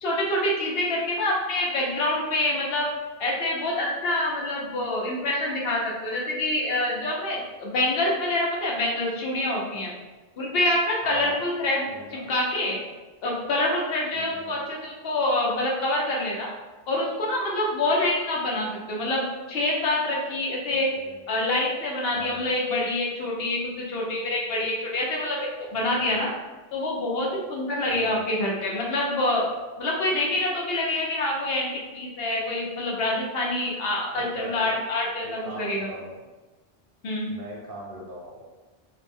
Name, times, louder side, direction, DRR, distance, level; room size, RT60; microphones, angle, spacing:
voice 1, 0.0-2.9 3.2-9.9 10.4-12.8 13.2-16.5 16.9-20.9 21.3-26.3 26.7-29.5 29.8-35.9 37.0-37.3, left 1 dB, 75° left, -2 dB, 0.8 m, -26 dB
voice 2, 11.0-11.4 11.9-12.2 14.1-14.6 20.9-21.2 22.1-22.5 25.9-26.2 27.9-28.3 34.1-34.8 35.2-36.2 37.3-38.4, right 2 dB, 65° right, -3 dB, 0.8 m, -40 dB
2.4 x 2.0 x 3.3 m, 1.2 s
omnidirectional pair, 1.0 m